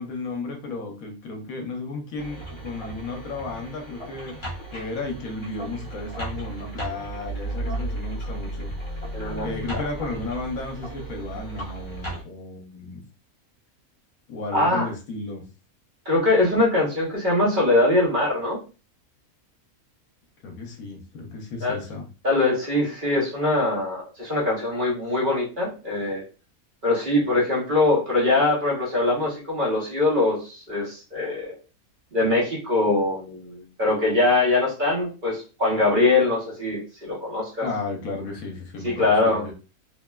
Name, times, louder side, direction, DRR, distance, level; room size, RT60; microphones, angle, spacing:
voice 1, 0.0-4.4 4.7-9.0 9.4-13.0 14.3-15.5 20.4-22.1 37.6-39.5, left 3 dB, 75° left, 3 dB, 1.0 m, -34 dB
sound 1, 2.2-12.2, right 2 dB, 25° left, 0.8 m, -34 dB
voice 2, 9.1-9.5 14.5-14.9 16.1-18.6 21.6-21.8 22.2-26.2 26.8-31.6 32.1-37.6 38.8-39.4, left 2 dB, 40° right, -4 dB, 0.9 m, -22 dB
3.0 x 2.1 x 2.2 m, 0.33 s
omnidirectional pair, 1.5 m